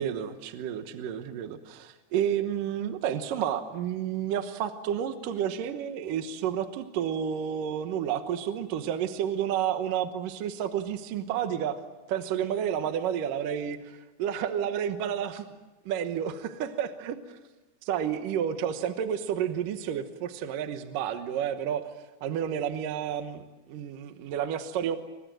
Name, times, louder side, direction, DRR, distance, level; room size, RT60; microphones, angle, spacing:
voice 1, 0.0-11.8 12.1-15.5 15.9-17.4 17.8-21.8 22.2-23.4 23.7-25.0, right 9 dB, 65° right, 8 dB, 2.4 m, -30 dB
29.5 x 24.5 x 7.6 m, 1.1 s
omnidirectional pair, 4.8 m